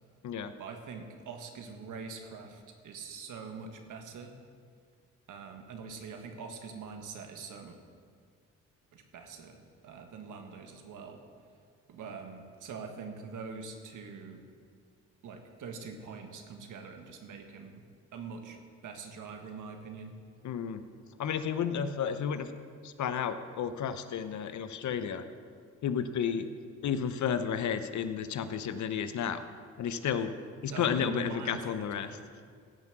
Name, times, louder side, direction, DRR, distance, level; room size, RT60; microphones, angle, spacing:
voice 1, 0.6-4.3 5.3-7.8 8.9-11.2 11.9-14.4 15.2-17.8 18.1-18.6 18.8-20.1 30.7-32.2, right 5 dB, 70° right, 5 dB, 1.6 m, -44 dB
voice 2, 20.4-20.8 21.2-22.5 22.8-25.2 25.8-26.5 26.8-29.4 29.8-30.4 30.6-32.2, left 7 dB, 60° left, 11 dB, 0.9 m, -32 dB
16.5 x 5.9 x 6.1 m, 2.1 s
supercardioid pair, 60°, 33 cm